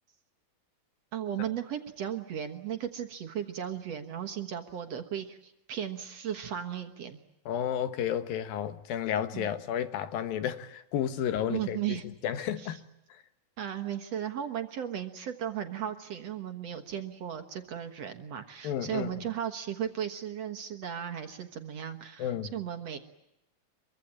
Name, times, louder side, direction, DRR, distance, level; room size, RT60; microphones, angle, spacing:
voice 1, 1.1-7.2 9.3-9.5 11.5-12.0 12.6-12.8 13.6-23.0, right 9 dB, 55° right, 6 dB, 2.1 m, -36 dB
voice 2, 7.5-12.9 13.1-13.2 18.6-19.2 22.2-22.5, left 9 dB, 80° left, 11 dB, 3.0 m, -32 dB
24.5 x 23.5 x 8.8 m, 0.86 s
omnidirectional pair, 4.1 m